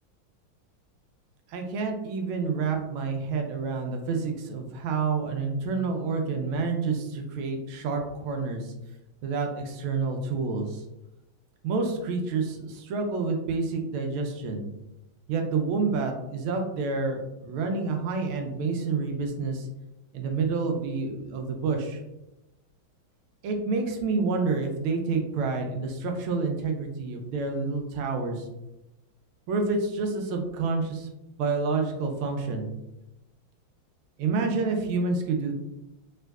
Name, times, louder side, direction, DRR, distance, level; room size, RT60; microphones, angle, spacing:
voice 1, 1.5-8.7 9.2-10.8 11.6-14.6 15.3-19.7 20.1-22.0 23.4-28.5 29.5-31.1 31.4-32.7 34.2-35.5, right 4 dB, 85° right, 4 dB, 1.4 m, -28 dB
3.5 x 3.0 x 2.2 m, 0.94 s
omnidirectional pair, 2.2 m